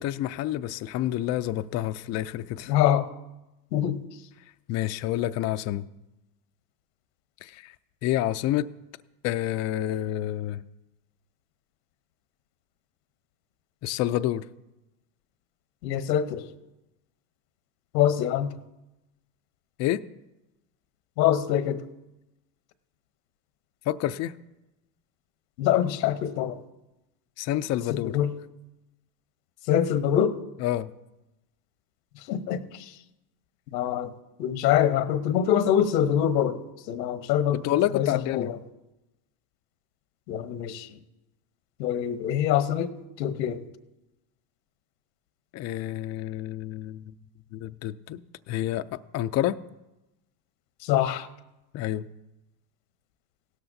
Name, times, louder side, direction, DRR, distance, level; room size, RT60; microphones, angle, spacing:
voice 1, 0.0-2.7 4.7-5.9 7.4-7.7 8.0-8.7 9.2-10.6 13.8-14.4 19.8-20.0 23.9-24.3 27.4-28.2 30.6-30.9 37.5-38.5 45.5-47.1 47.5-48.2 48.5-49.6 51.7-52.1, left 13 dB, 35° left, 10 dB, 0.4 m, -28 dB
voice 2, 2.7-3.1 3.7-4.0 15.8-16.4 17.9-18.5 21.2-21.8 25.6-26.6 27.9-28.3 29.7-30.4 32.3-33.0 33.7-34.1 34.4-37.6 37.9-38.6 40.3-40.9 41.8-42.9 43.2-43.6 50.8-51.3, left 10 dB, 85° left, 11 dB, 1.0 m, -24 dB
17.0 x 13.0 x 2.7 m, 0.98 s
supercardioid pair, 95°, 49 cm